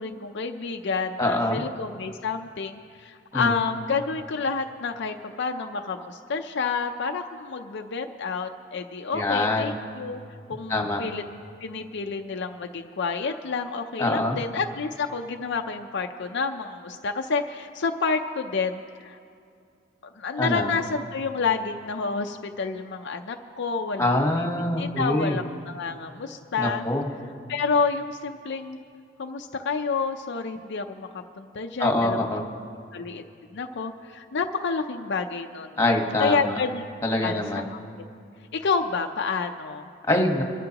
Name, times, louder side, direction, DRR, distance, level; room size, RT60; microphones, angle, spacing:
voice 1, 0.0-10.2 10.5-11.2 11.6-19.2 20.0-24.5 24.8-26.8 27.5-28.8 29.2-32.2 32.9-33.2 33.5-35.7 36.2-36.8 37.2-37.8 38.5-39.9, left 4 dB, 65° left, 4 dB, 0.6 m, -29 dB
voice 2, 1.2-1.6 3.3-3.5 9.1-9.7 10.7-11.0 14.0-14.4 20.4-20.7 24.0-25.4 26.6-27.1 31.8-32.4 35.8-36.6 37.0-37.6 40.0-40.4, left 1 dB, 15° left, 2 dB, 1.4 m, -24 dB
24.0 x 12.5 x 2.9 m, 2.4 s
head